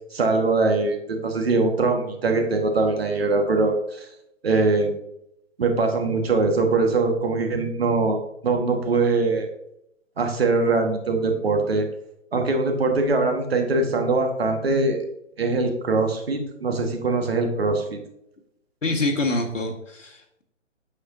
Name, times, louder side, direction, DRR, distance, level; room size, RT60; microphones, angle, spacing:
voice 1, 0.1-4.1 4.4-4.9 5.6-9.5 10.2-11.9 12.3-15.0 15.4-18.0, right 3 dB, 50° right, 5 dB, 1.5 m, -22 dB
voice 2, 18.8-20.4, left 2 dB, 75° left, 3 dB, 1.7 m, -26 dB
8.9 x 7.0 x 2.6 m, 0.78 s
figure-of-eight pair, 140°, 38 cm